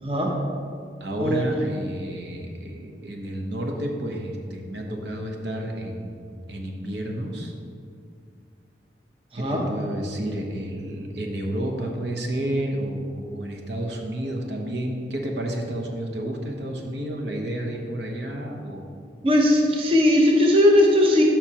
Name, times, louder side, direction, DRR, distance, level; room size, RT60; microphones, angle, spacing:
voice 1, 0.0-0.3 1.2-1.5 9.3-9.7 19.2-21.2, left 1 dB, 30° right, -1 dB, 0.8 m, -18 dB
voice 2, 1.0-6.1 6.5-7.5 9.3-18.9, right 1 dB, 70° right, 1 dB, 0.9 m, -30 dB
12.0 x 5.6 x 2.9 m, 2.3 s
head